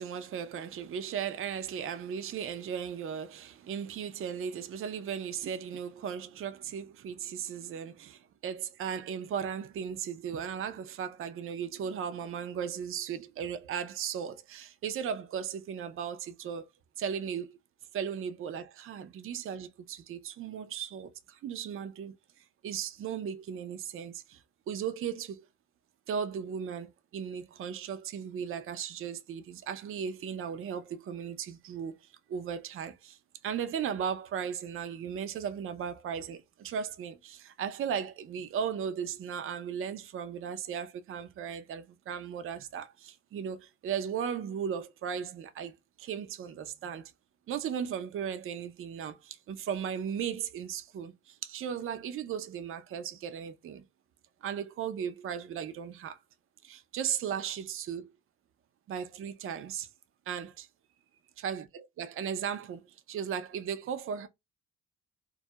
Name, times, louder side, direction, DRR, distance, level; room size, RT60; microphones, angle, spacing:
voice 1, 0.0-16.7 17.0-17.6 17.9-22.1 22.6-25.5 26.1-47.1 47.5-53.8 54.4-56.2 56.6-58.1 58.9-59.9 60.3-60.7 61.4-64.3, right 8 dB, 45° right, 0.4 m, -36 dB
2.3 x 2.0 x 2.7 m
cardioid pair, 90°, 30 cm